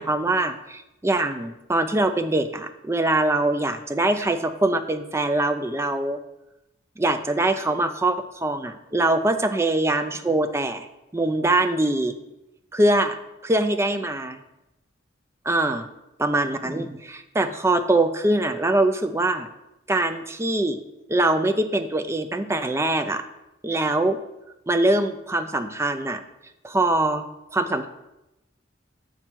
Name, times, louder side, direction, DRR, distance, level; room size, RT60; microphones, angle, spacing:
voice 1, 0.0-6.2 7.0-10.9 11.1-12.1 12.7-13.2 13.4-14.4 15.5-15.9 16.2-19.5 19.9-20.8 21.1-23.2 23.6-24.2 24.7-26.2 26.6-27.3 27.5-27.9, right 2 dB, 15° right, 9 dB, 0.4 m, -23 dB
6.7 x 4.4 x 6.1 m, 0.92 s
head